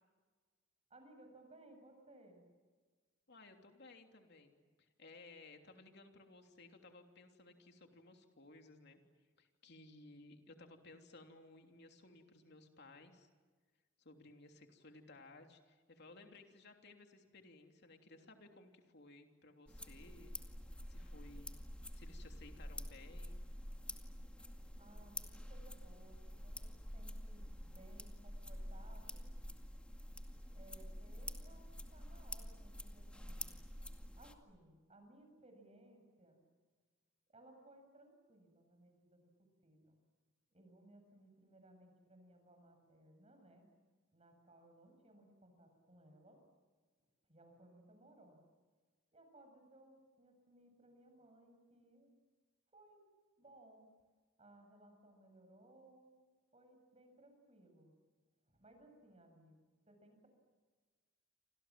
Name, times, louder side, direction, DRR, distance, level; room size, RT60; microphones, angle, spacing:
voice 1, 0.9-2.5 24.8-29.3 30.5-31.6 31.9-33.6 34.2-36.4 37.3-40.0 40.5-43.7 44.1-46.4 47.3-48.4 49.1-52.2 52.7-53.0 53.4-53.9 54.4-56.2 56.5-57.9 58.5-60.3, right 1 dB, 30° right, 5 dB, 7.5 m, -63 dB
voice 2, 3.3-9.0 9.4-13.3 14.0-20.3 20.9-23.4, left 2 dB, 60° left, 4 dB, 3.2 m, -59 dB
sound 1, 19.7-34.3, left 1 dB, 5° left, 2.2 m, -48 dB
30.0 x 26.0 x 7.6 m, 1.4 s
head